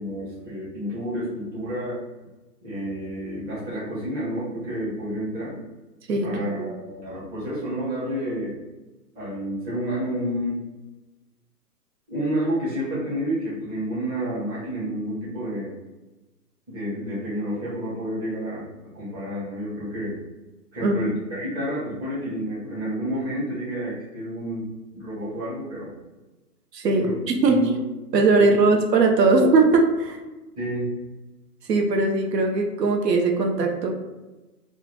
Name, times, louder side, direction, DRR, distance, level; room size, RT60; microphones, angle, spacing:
voice 1, 0.0-2.0 2.6-5.6 6.2-8.6 9.1-10.6 12.1-15.8 16.7-18.6 18.9-20.2 20.7-25.9 27.0-27.2 27.4-27.8 28.4-28.5 30.6-30.9, equal, 15° right, -9 dB, 0.7 m, -30 dB
voice 2, 6.1-6.7 20.8-21.0 26.7-27.7 28.1-30.2 31.7-33.9, right 3 dB, 85° right, 3 dB, 0.6 m, -20 dB
2.3 x 2.1 x 3.0 m, 1.1 s
hypercardioid pair, 135°, 48 cm